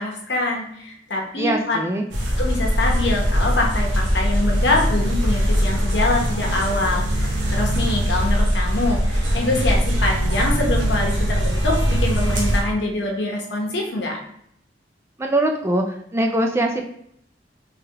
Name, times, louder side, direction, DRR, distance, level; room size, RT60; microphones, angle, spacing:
voice 1, 0.0-1.8 2.4-14.2, left 2 dB, 75° left, -1 dB, 0.9 m, -24 dB
voice 2, 1.4-2.1 15.2-15.8 16.1-16.8, right 1 dB, 15° right, 3 dB, 0.3 m, -21 dB
sound 1, 2.1-12.6, equal, 90° right, 0.8 m, -21 dB
3.5 x 3.4 x 2.8 m, 0.71 s
head